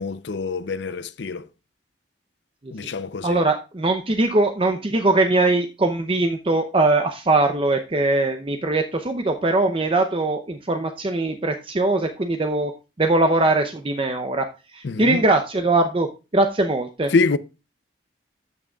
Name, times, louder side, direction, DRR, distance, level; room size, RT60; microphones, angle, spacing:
voice 1, 0.0-1.5 2.7-3.4 14.8-15.2 17.1-17.4, left 4 dB, 65° left, 0.5 m, -25 dB
voice 2, 3.2-12.7 13.0-14.5 14.7-16.1 16.3-17.1, right 2 dB, 30° right, 0.6 m, -21 dB
13.5 x 6.2 x 2.3 m
head